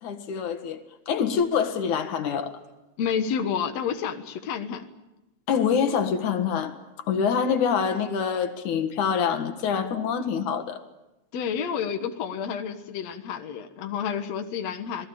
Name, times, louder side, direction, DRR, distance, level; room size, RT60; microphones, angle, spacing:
voice 1, 0.0-0.8 1.1-2.5 5.5-6.8 7.1-10.8, left 7 dB, 85° left, 3.2 m, -25 dB
voice 2, 3.0-4.8 11.3-15.1, left 7 dB, 65° left, 2.5 m, -30 dB
27.5 x 19.0 x 8.8 m
omnidirectional pair, 3.4 m